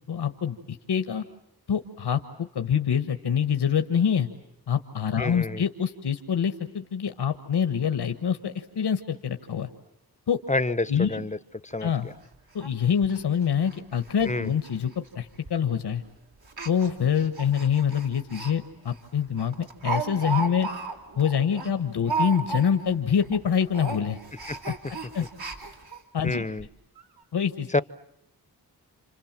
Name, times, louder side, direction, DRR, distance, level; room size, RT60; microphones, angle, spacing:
voice 1, 0.1-1.2 1.7-4.3 4.7-9.7 10.3-10.4 10.9-11.2 11.8-12.1 12.5-14.9 15.1-16.0 16.6-20.7 21.2-24.2 24.6-25.2 26.1-26.4 27.3-27.7, left 7 dB, 80° left, 8 dB, 1.5 m, -26 dB
voice 2, 5.2-5.6 10.5-11.4 11.6-12.1 14.3-14.5 24.5-24.6 26.2-26.7 27.7-27.8, left 2 dB, 20° left, 17 dB, 1.0 m, -28 dB
Speech, 11.7-11.8 12.1-12.2 12.6-12.7 13.0-13.2 13.6-13.8 14.0-14.3 14.6-14.7 15.5-15.7 16.4-18.5 18.9-19.0 19.4-22.9 23.2-23.4 23.7-26.0 26.6-26.7 27.0-27.1, right 4 dB, 65° right, 3.9 m, -34 dB
30.0 x 26.5 x 7.5 m, 0.82 s
cardioid pair, 50°, 39 cm